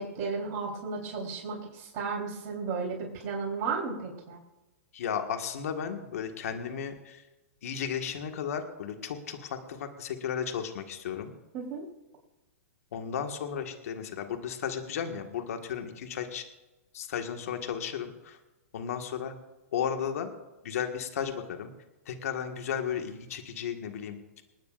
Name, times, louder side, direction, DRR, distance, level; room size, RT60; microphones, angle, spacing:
voice 1, 0.0-3.0 3.2-4.4 11.5-11.8, right 4 dB, 40° right, -3 dB, 3.9 m, -34 dB
voice 2, 4.9-7.2 7.6-11.3 12.9-16.4 16.9-18.4 18.7-19.4 19.7-20.3 20.6-21.7 22.1-24.2, left 8 dB, 70° left, 5 dB, 1.8 m, -34 dB
27.5 x 9.4 x 2.6 m, 1.0 s
hypercardioid pair, 135°, 8 cm